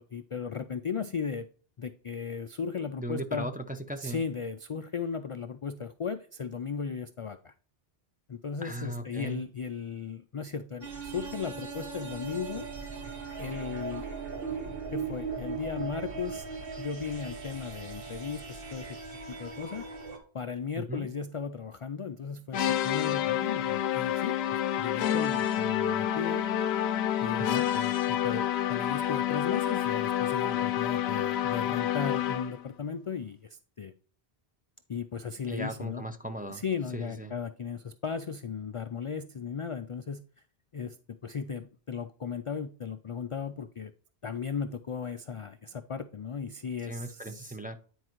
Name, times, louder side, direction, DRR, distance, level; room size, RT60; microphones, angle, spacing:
voice 1, 0.0-1.5 1.8-3.5 4.0-7.5 8.3-12.7 13.4-14.0 14.9-16.5 16.8-19.0 19.3-19.9 20.3-24.3 24.8-26.4 27.2-27.5 27.7-33.9 34.9-36.0 36.5-40.2 40.7-43.9 44.2-47.6, left 6 dB, 50° left, 10 dB, 0.3 m, -36 dB
voice 2, 3.0-4.2 8.6-9.4 20.8-21.1 27.4-27.7 35.5-36.6 36.9-37.3 46.8-47.8, right 1 dB, 10° right, 6 dB, 0.5 m, -37 dB
sound 1, 10.8-20.2, right 5 dB, 65° right, 1.5 m, -39 dB
sound 2, 22.5-32.6, left 11 dB, 80° left, 0.8 m, -28 dB
9.9 x 4.7 x 3.0 m, 0.42 s
omnidirectional pair, 1.0 m